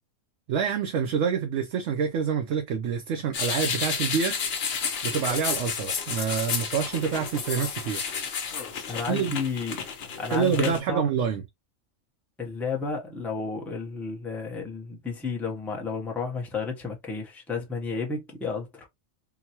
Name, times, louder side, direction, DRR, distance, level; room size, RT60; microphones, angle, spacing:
voice 1, 0.5-4.5 5.0-8.0 9.1-9.3 10.3-11.4, right 7 dB, 70° right, 0.9 m, -27 dB
sound 1, 3.3-10.8, left 6 dB, 55° left, 0.9 m, -32 dB
sound 2, 5.3-6.8 7.0-7.9 8.1-9.0 10.0-10.7, left 7 dB, 80° left, 1.1 m, -35 dB
voice 2, 8.9-9.8 10.2-11.1 12.4-18.9, left 4 dB, ahead, 0.6 m, -32 dB
3.8 x 2.2 x 2.8 m
omnidirectional pair, 1.3 m